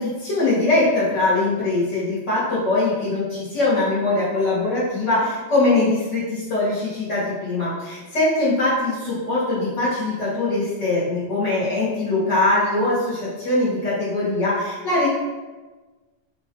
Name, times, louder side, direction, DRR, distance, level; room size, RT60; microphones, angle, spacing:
voice 1, 0.0-15.1, left 2 dB, 80° left, -8 dB, 1.5 m, -22 dB
4.2 x 2.2 x 2.9 m, 1.2 s
omnidirectional pair, 1.3 m